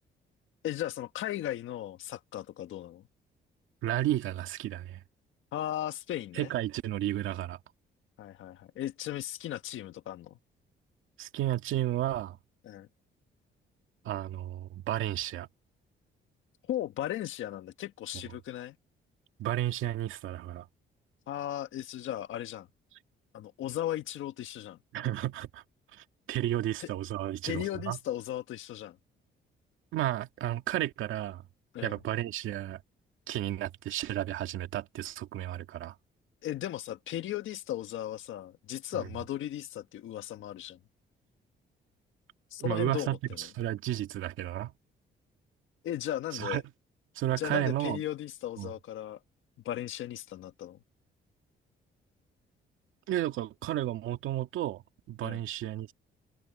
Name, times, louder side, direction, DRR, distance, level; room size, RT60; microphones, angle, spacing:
voice 1, 0.6-3.0 5.5-6.5 8.2-10.4 12.6-12.9 16.6-18.7 21.3-22.7 23.3-24.8 26.8-26.9 27.4-29.0 31.7-32.0 36.4-40.8 42.5-43.5 45.8-46.6 47.4-49.2 49.6-50.8 55.2-55.4, left 12 dB, 80° left, 1.5 m, -36 dB
voice 2, 3.8-5.0 6.4-7.6 11.2-12.4 14.0-15.5 19.4-20.7 24.9-25.6 25.9-28.0 29.9-31.4 31.8-32.8 33.3-35.9 38.9-39.0 42.6-44.7 46.3-46.6 47.2-48.0 48.6-48.7 53.1-55.9, right 13 dB, 85° right, 2.2 m, -32 dB
cardioid pair, 90°, 20 cm